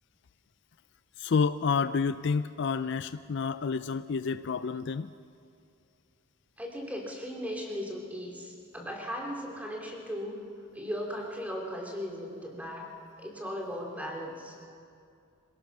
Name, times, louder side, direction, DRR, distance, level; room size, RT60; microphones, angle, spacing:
voice 1, 1.2-5.1, left 5 dB, 55° left, 13 dB, 0.4 m, -29 dB
voice 2, 6.6-10.4 10.7-12.9 13.2-14.6, equal, 5° right, 0 dB, 2.7 m, -37 dB
26.5 x 17.5 x 6.0 m, 2.4 s
head